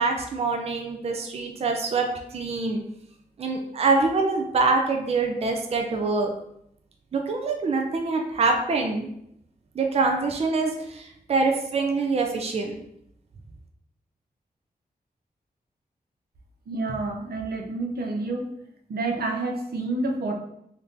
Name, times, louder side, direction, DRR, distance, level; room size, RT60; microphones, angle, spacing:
voice 1, 0.0-2.1 2.3-2.8 3.4-6.3 7.1-9.1 9.8-12.8, right 3 dB, 40° right, 3 dB, 0.4 m, -25 dB
voice 2, 16.7-18.5 18.9-20.3, right 2 dB, 90° right, 1 dB, 0.6 m, -28 dB
3.5 x 2.6 x 2.6 m, 0.75 s
wide cardioid pair, 125°, 16 cm